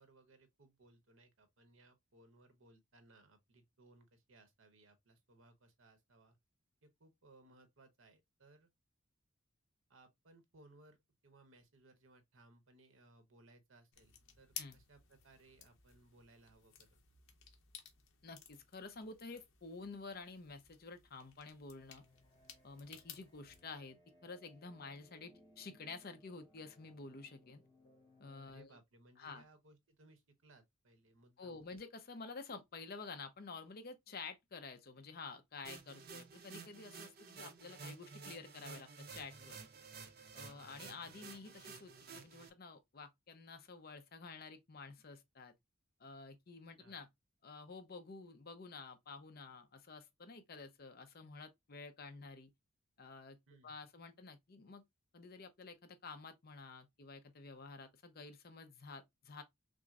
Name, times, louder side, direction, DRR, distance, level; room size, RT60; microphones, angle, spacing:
voice 1, 0.0-6.4 6.8-8.7 9.9-11.0 11.2-17.0 28.4-31.7 40.5-40.9 46.8-47.0 53.5-53.7, right 2 dB, 65° right, 0.9 m, -65 dB
sound 1, 13.9-23.6, left 8 dB, 70° left, 0.9 m, -56 dB
voice 2, 18.2-22.0 22.6-24.0 24.2-27.6 28.2-28.8 29.2-29.4 31.4-39.6 40.3-45.5 46.0-47.1 47.4-52.5 53.0-53.4 53.6-54.8 55.1-59.4, left 4 dB, 45° left, 0.6 m, -51 dB
sound 2, 21.7-28.6, left 1 dB, 20° left, 0.9 m, -67 dB
sound 3, 35.6-42.5, right 5 dB, 45° right, 0.6 m, -52 dB
6.0 x 2.0 x 2.4 m
head